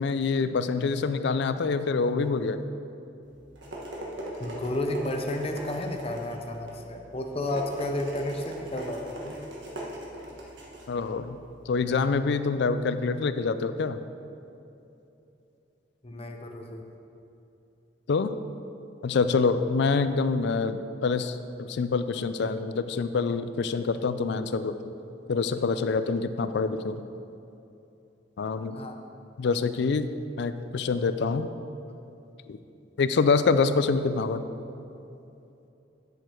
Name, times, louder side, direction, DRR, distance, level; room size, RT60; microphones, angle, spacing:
voice 1, 0.0-2.6 10.9-11.4 11.7-14.0 18.1-18.3 19.0-24.7 25.3-27.0 28.4-28.8 29.4-30.1 30.4-31.5 32.5-32.6 33.0-34.5, left 4 dB, 70° left, 12 dB, 0.4 m, -26 dB
sound 1, 3.2-12.1, right 1 dB, 85° right, 1.5 m, -40 dB
voice 2, 4.4-9.4 16.0-16.8 26.5-26.6 28.7-29.0, left 1 dB, 35° left, 4 dB, 0.7 m, -32 dB
8.2 x 6.9 x 4.5 m, 2.9 s
head